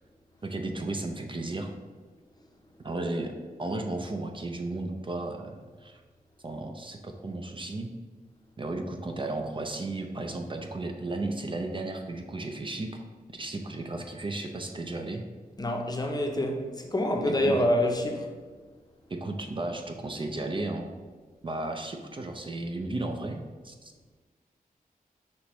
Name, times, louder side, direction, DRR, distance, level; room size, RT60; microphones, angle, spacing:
voice 1, 0.4-1.7 2.8-3.3 3.6-6.0 6.4-7.9 8.6-13.0 13.3-15.2 17.3-17.6 19.1-20.9 21.4-23.9, right 2 dB, 35° right, 4 dB, 0.4 m, -34 dB
voice 2, 15.6-18.3, left 1 dB, 25° left, 2 dB, 0.6 m, -26 dB
6.1 x 2.9 x 3.0 m, 1.4 s
wide cardioid pair, 75°, 15 cm